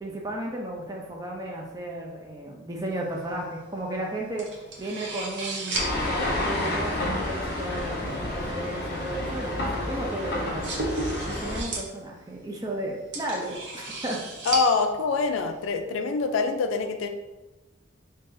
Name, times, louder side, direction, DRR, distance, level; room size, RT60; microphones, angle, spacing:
voice 1, 0.0-4.5 4.8-10.6 11.2-14.2, right 1 dB, 20° right, 0 dB, 0.4 m, -34 dB
sound 1, 2.9-15.7, right 2 dB, 65° right, 0.7 m, -37 dB
sound 2, 5.7-11.6, left 1 dB, 55° left, 0.6 m, -30 dB
voice 2, 14.5-17.1, left 4 dB, 85° left, 7 dB, 0.3 m, -25 dB
3.8 x 2.7 x 2.6 m, 1.1 s
head